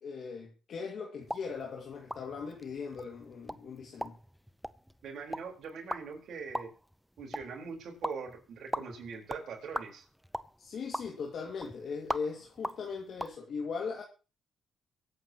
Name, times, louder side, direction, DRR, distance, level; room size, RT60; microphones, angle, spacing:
voice 1, 0.0-4.2 10.6-14.0, left 5 dB, 60° left, 2.2 m, -39 dB
sound 1, 1.2-13.4, equal, ahead, 0.6 m, -42 dB
voice 2, 5.0-6.7 7.2-10.1, right 5 dB, 70° right, 4.3 m, -42 dB
23.5 x 8.5 x 3.0 m
cardioid pair, 90°, 0 cm